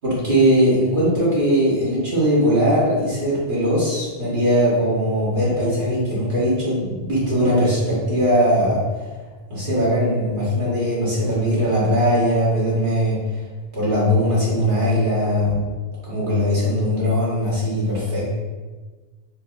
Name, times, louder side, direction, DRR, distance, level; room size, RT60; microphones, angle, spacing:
voice 1, 0.0-8.8 9.5-13.2 13.7-15.6 16.0-18.3, equal, 55° right, -9 dB, 1.5 m, -20 dB
4.5 x 2.7 x 2.4 m, 1.3 s
omnidirectional pair, 1.1 m